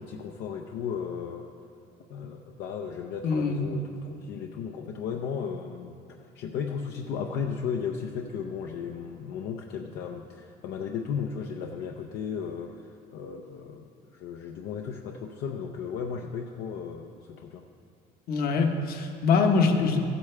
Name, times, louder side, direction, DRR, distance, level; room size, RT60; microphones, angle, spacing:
voice 1, 0.0-1.5 2.1-17.6, left 6 dB, 80° left, 2 dB, 0.6 m, -35 dB
voice 2, 3.2-3.6 18.3-20.0, left 4 dB, 65° left, 4 dB, 1.0 m, -23 dB
14.5 x 8.3 x 3.3 m, 2.5 s
cardioid pair, 110°, 17 cm